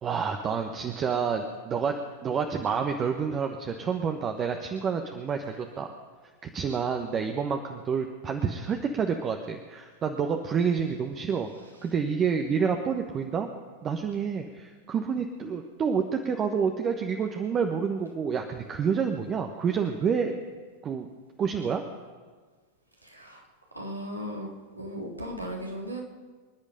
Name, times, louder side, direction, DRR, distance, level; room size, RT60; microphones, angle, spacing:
voice 1, 0.0-5.9 6.4-11.5 11.8-13.5 13.8-20.3 20.8-21.1 21.4-21.8, right 6 dB, 25° right, 5 dB, 1.2 m, -28 dB
voice 2, 23.0-23.4 23.7-26.0, equal, 85° right, -1 dB, 3.2 m, -37 dB
26.0 x 10.5 x 5.1 m, 1.4 s
figure-of-eight pair, 90°, 0 cm